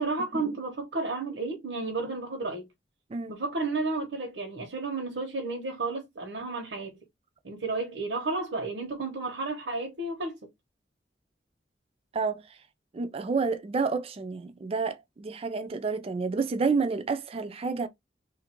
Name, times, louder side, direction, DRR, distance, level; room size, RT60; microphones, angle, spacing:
voice 1, 0.0-2.7 3.3-7.0 7.4-10.4, right 3 dB, 85° right, 1.0 m, -32 dB
voice 2, 12.9-17.9, right 4 dB, 35° right, 0.4 m, -29 dB
3.3 x 2.5 x 4.3 m
head